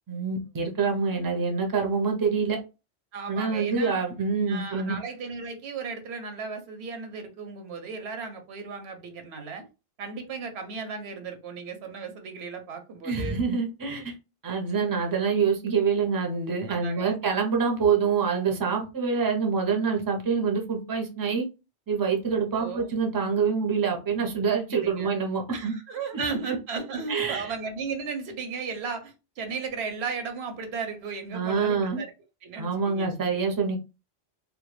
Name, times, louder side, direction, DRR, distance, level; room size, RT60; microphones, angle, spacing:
voice 1, 0.1-2.6 3.3-5.0 13.0-14.1 14.4-21.5 21.9-25.7 26.5-26.6 27.1-27.5 31.3-32.0 32.6-33.8, right 5 dB, 30° right, 0.5 m, -26 dB
voice 2, 3.1-4.0 4.5-9.7 10.0-13.4 16.7-17.2 22.6-22.9 24.7-25.2 25.5-32.1 32.4-33.1, right 5 dB, 85° right, 0.9 m, -35 dB
2.2 x 2.1 x 3.0 m
omnidirectional pair, 1.0 m